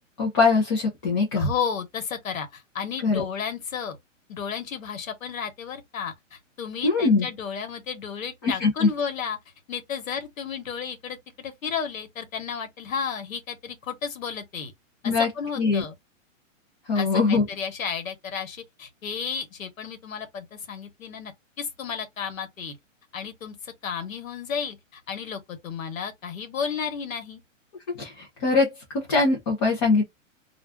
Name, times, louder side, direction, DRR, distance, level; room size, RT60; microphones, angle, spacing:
voice 1, 0.2-1.5 3.0-3.3 6.8-7.3 8.4-8.9 15.0-15.3 15.6-15.8 16.9-17.5 27.9-30.0, left 4 dB, 20° left, 0.5 m, -22 dB
voice 2, 1.3-4.0 4.3-9.4 9.7-14.7 15.0-15.9 16.9-21.3 21.6-22.8 23.1-27.4, left 6 dB, 90° left, 1.2 m, -33 dB
2.4 x 2.3 x 3.4 m
hypercardioid pair, 155°, 39 cm